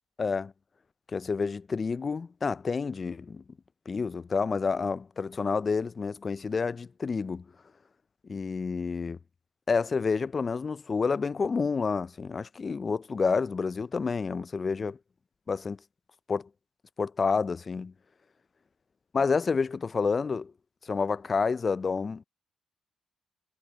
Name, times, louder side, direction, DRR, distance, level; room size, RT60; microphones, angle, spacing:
voice 1, 0.2-0.5 1.1-3.4 3.9-7.4 8.3-9.2 9.7-15.0 15.5-15.8 16.3-16.4 17.0-17.9 19.1-20.5 20.9-22.2, left 5 dB, 35° left, 0.4 m, -29 dB
cardioid pair, 90°, 0 cm